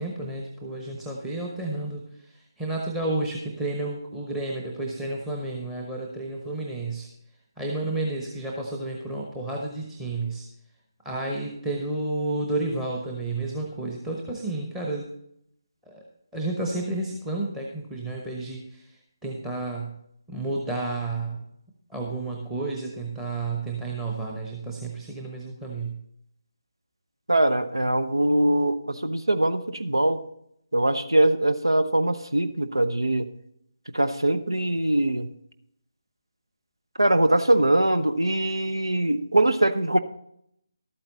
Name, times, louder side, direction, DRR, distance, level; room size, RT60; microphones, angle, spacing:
voice 1, 0.0-2.0 2.6-7.1 7.6-10.4 11.0-15.1 15.9-16.0 16.3-18.8 19.2-19.9 20.3-21.4 21.9-26.0, right 2 dB, 5° right, 0 dB, 1.0 m, -31 dB
voice 2, 27.3-30.2 30.7-33.3 33.9-35.3 37.0-40.0, right 1 dB, 85° right, 9 dB, 0.9 m, -22 dB
12.0 x 8.8 x 4.1 m, 0.74 s
figure-of-eight pair, 150°, 2 cm